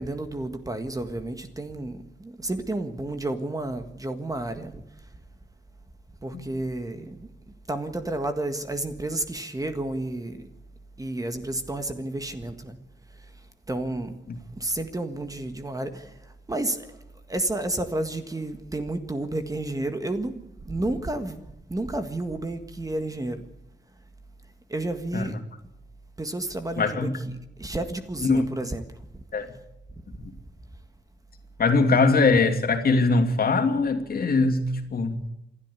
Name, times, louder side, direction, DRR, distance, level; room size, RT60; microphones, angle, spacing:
voice 1, 0.0-4.8 6.2-7.3 7.7-10.5 11.0-12.8 13.2-14.2 14.6-17.0 17.3-21.4 21.7-23.4 24.7-25.4 26.2-28.8, right 2 dB, 20° right, 1.7 m, -31 dB
voice 2, 26.8-27.2 28.2-28.5 29.3-29.5 31.6-35.2, left 3 dB, 50° left, 2.7 m, -22 dB
27.5 x 12.5 x 8.4 m
wide cardioid pair, 125°, 19 cm